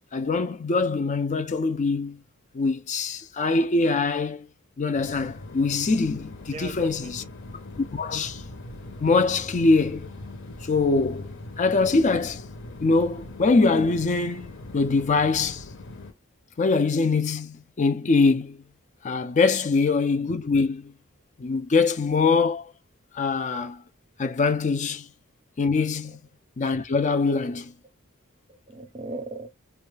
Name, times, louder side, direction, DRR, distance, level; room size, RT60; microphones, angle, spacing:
voice 1, 0.1-2.2 2.5-4.5 4.8-7.2 7.8-8.4 9.0-10.1 10.6-11.3 11.6-12.4 12.8-15.7 16.6-18.6 19.0-20.9 21.4-22.7 23.1-23.8 24.2-25.1 25.6-26.2 26.6-27.7, left 3 dB, 35° left, 0.4 m, -23 dB
sound 1, 4.9-16.1, left 2 dB, 60° left, 0.9 m, -41 dB
voice 2, 6.5-7.3 28.5-29.5, right 2 dB, 30° right, 0.6 m, -38 dB
2.7 x 2.3 x 3.2 m
head